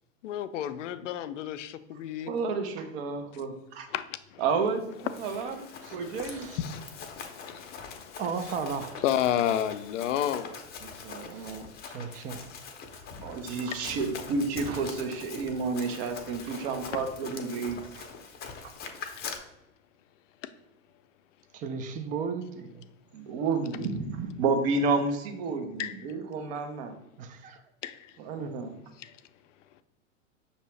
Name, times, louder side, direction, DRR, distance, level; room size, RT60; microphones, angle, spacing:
voice 1, 0.2-2.3 3.9-4.0 4.3-4.4 5.2-5.3 5.8-8.2 9.0-10.5 19.2-19.3 20.4-20.5 25.8-26.0 27.8-28.1 29.0-29.2, left 10 dB, 70° left, 12 dB, 0.5 m, -32 dB
voice 2, 2.3-3.9 4.4-6.5 10.8-11.7 13.2-18.1 23.1-26.9 28.2-28.7, right 4 dB, 50° right, 6 dB, 0.9 m, -31 dB
Run, 4.8-19.4, left 5 dB, 25° left, 0.6 m, -43 dB
voice 3, 6.2-6.6 8.2-9.0 11.4-11.6 11.9-12.5 21.5-22.8 27.2-27.6 28.4-28.5, right 5 dB, 20° right, 8 dB, 0.4 m, -35 dB
5.9 x 2.8 x 3.2 m, 0.88 s
hypercardioid pair, 105°, 39 cm